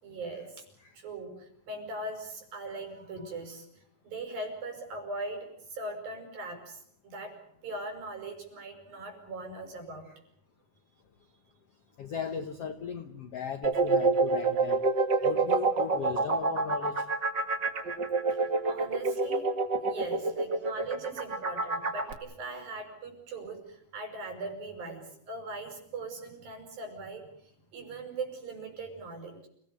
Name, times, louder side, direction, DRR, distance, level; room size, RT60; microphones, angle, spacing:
voice 1, 0.0-0.6 0.9-10.1 15.2-15.3 17.8-18.0 18.3-19.5 19.8-29.5, right 2 dB, 65° right, 5 dB, 7.1 m, -40 dB
voice 2, 12.0-14.8 15.2-17.0, left 7 dB, 65° left, 8 dB, 1.5 m, -37 dB
sound 1, 13.6-22.1, right 3 dB, 40° right, 1.7 m, -27 dB
28.5 x 18.0 x 8.2 m, 0.69 s
omnidirectional pair, 4.4 m